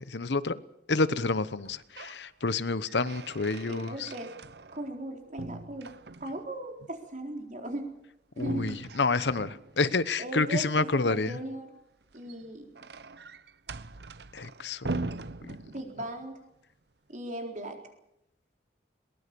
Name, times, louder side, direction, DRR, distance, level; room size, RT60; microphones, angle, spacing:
voice 1, 0.1-0.6 0.9-4.1 8.4-11.4 14.3-15.0 15.4-15.5, left 3 dB, 80° left, 15 dB, 1.0 m, -29 dB
sound 1, 1.6-2.2 2.6-5.1 5.4-6.6 8.4-10.0 12.0-16.2, right 2 dB, 65° right, 0.8 m, -41 dB
voice 2, 3.6-4.3 4.7-5.9 6.2-7.8 8.4-8.8 10.2-11.7 12.1-12.7 15.7-16.4 17.1-17.8, right 1 dB, 45° right, 3 dB, 4.1 m, -37 dB
22.0 x 20.0 x 6.9 m, 0.81 s
head